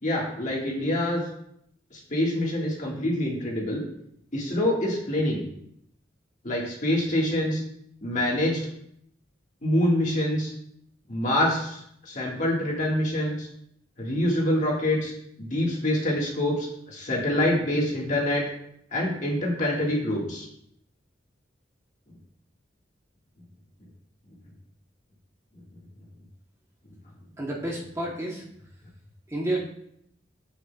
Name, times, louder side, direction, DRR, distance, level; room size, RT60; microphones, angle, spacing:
voice 1, 0.0-1.2 1.9-3.8 4.3-5.4 6.4-7.6 8.0-8.6 9.6-10.5 11.1-11.8 12.1-13.5 14.0-15.1 15.4-18.5 18.9-20.5, left 1 dB, 40° left, -3 dB, 1.7 m, -25 dB
voice 2, 27.4-28.4 29.3-29.6, right 1 dB, 15° right, -3 dB, 1.0 m, -30 dB
7.8 x 6.6 x 2.3 m, 0.72 s
head